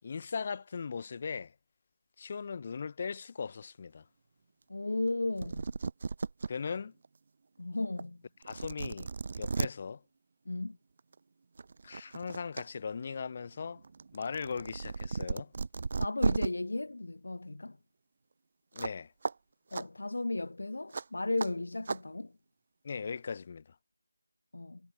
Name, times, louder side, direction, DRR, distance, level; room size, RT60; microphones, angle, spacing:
voice 1, 0.0-1.5 2.2-4.0 6.5-6.9 8.4-9.1 9.4-10.0 11.8-13.8 14.1-15.5 18.7-19.1 22.8-23.6, left 5 dB, 30° left, 7.3 m, -38 dB
voice 2, 4.7-5.6 7.6-8.2 10.4-10.8 16.0-17.8 19.7-22.3 24.5-24.8, left 2 dB, 60° left, 3.4 m, -35 dB
sound 1, 5.1-5.2 5.4-6.5 7.0-7.1 8.0-8.1 8.4-9.7 11.0-11.2 11.6-12.6 13.0-16.5 18.8-19.0 19.2-19.3 19.7-19.8 20.9-21.0 21.4-21.5 21.9-22.0, right 4 dB, 35° right, 3.3 m, -35 dB
figure-of-eight pair, 170°, 0 cm